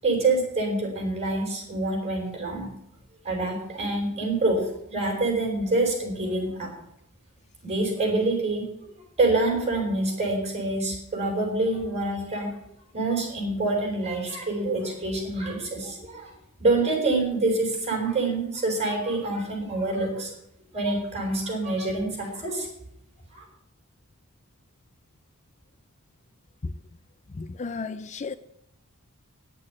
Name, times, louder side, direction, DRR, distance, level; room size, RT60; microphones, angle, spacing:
voice 1, 0.0-2.7 3.2-6.7 7.6-12.5 12.9-16.3 16.6-20.3 20.7-22.7 23.3-23.4, right 2 dB, 30° right, 6.2 m, -26 dB
voice 2, 27.4-28.4, left 4 dB, 30° left, 0.5 m, -33 dB
10.5 x 8.5 x 9.7 m
head